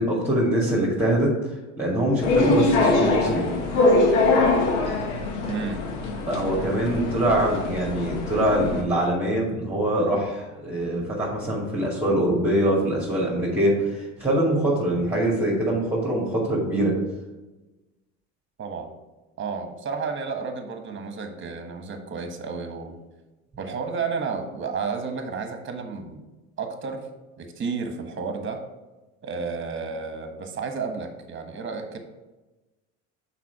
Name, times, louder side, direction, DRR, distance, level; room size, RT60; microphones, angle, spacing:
voice 1, 0.0-3.4 6.2-16.9, right 1 dB, 5° right, -5 dB, 2.3 m, -23 dB
sound 1, 2.2-8.8, left 2 dB, 85° left, 1.3 m, -23 dB
voice 2, 5.5-5.8 18.6-18.9 19.4-23.0 23.6-26.2 26.6-27.1 27.4-28.6 29.2-32.0, right 5 dB, 35° right, 6 dB, 1.3 m, -32 dB
6.0 x 5.0 x 4.8 m, 1.1 s
supercardioid pair, 85°, 35 cm